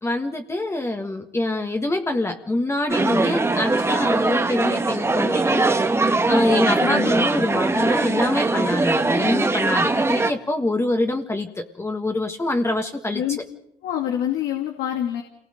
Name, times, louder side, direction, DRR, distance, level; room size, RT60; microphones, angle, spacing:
voice 1, 0.0-5.6 6.3-13.2, left 2 dB, 15° left, 4 dB, 1.7 m, -25 dB
sound 1, 2.9-10.3, right 3 dB, 15° right, 1.3 m, -21 dB
voice 2, 6.8-7.1 13.1-13.4 13.8-15.2, left 11 dB, 85° left, 2 dB, 2.5 m, -26 dB
27.5 x 19.0 x 5.2 m, 0.76 s
cardioid pair, 110°, 17 cm